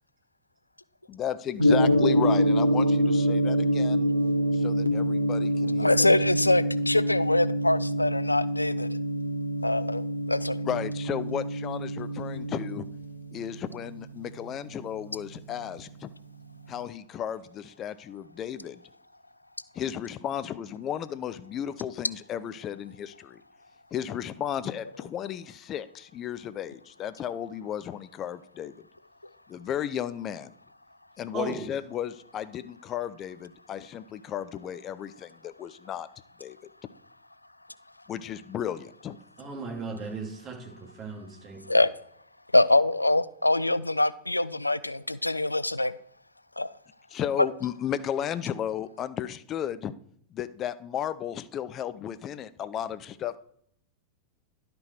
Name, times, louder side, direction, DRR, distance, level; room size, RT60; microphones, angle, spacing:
voice 1, 1.1-4.1 4.5-6.1 10.6-12.9 13.3-16.1 16.7-18.8 19.7-23.4 23.9-28.7 29.5-30.5 31.2-36.1 36.4-36.6 38.1-39.2 47.1-49.9 50.3-53.4, left 10 dB, 30° left, 15 dB, 0.5 m, -34 dB
Gong, 1.6-15.8, equal, 90° right, 0.8 m, -26 dB
voice 2, 5.8-8.9 9.6-10.6 41.7-41.9 42.5-45.9 46.6-46.7, left 2 dB, 85° left, 17 dB, 0.3 m, -24 dB
voice 3, 31.3-31.7 39.4-41.8, right 4 dB, 30° right, 1 dB, 2.6 m, -37 dB
11.5 x 5.2 x 4.5 m, 0.67 s
figure-of-eight pair, 90°, 0 cm